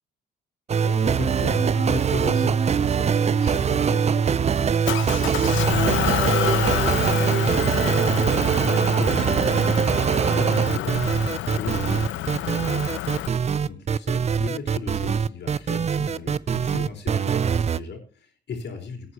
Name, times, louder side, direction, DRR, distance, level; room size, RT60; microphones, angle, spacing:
sound 1, 0.7-17.8, right 7 dB, 35° right, 0.5 m, -22 dB
voice 1, 0.8-4.7 5.0-10.0 10.3-13.3 13.6-19.1, left 5 dB, 60° left, 3 dB, 4.3 m, -37 dB
Motor vehicle (road) / Engine, 4.8-13.3, left 14 dB, 75° left, 0.6 m, -28 dB
17.5 x 9.5 x 2.9 m, 0.38 s
cardioid pair, 90°, 20 cm